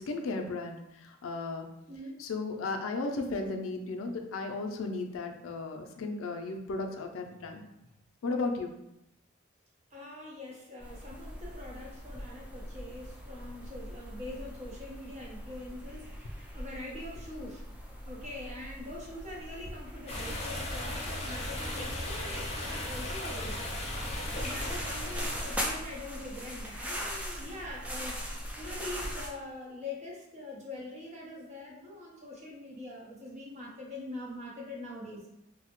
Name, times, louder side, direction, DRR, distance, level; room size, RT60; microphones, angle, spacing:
voice 1, 0.0-1.7 2.2-7.6 8.2-8.7, left 3 dB, 90° left, 4 dB, 0.4 m, -35 dB
voice 2, 1.9-2.3 7.8-7.9 9.9-17.6 18.0-23.6 24.3-28.2 28.6-35.4, left 2 dB, 35° right, -3 dB, 0.7 m, -43 dB
sound 1, 10.8-29.3, equal, 5° right, 0.3 m, -41 dB
sound 2, 20.1-25.6, left 1 dB, 30° left, 0.6 m, -36 dB
3.2 x 2.0 x 2.9 m, 0.85 s
head